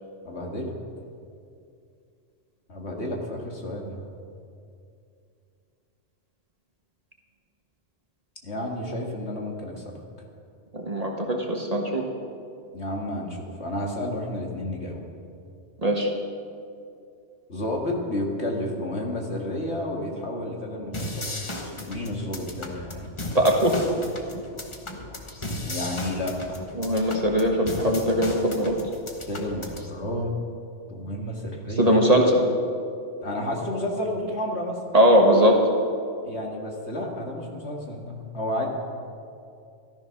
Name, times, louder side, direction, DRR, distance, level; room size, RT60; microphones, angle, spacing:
voice 1, 0.2-0.7 2.7-4.0 8.4-9.8 12.7-15.0 17.5-21.4 21.6-23.1 25.6-26.6 29.3-30.3 30.9-32.1 33.2-34.8 36.2-38.7, left 1 dB, 60° left, 0 dB, 2.2 m, -31 dB
voice 2, 10.7-12.0 15.8-16.1 23.3-23.8 26.8-28.8 31.8-32.4 34.9-35.6, equal, 30° right, 1 dB, 1.5 m, -20 dB
sound 1, 20.9-29.9, left 1 dB, 25° left, 1.2 m, -36 dB
14.0 x 13.0 x 5.9 m, 2.5 s
omnidirectional pair, 1.3 m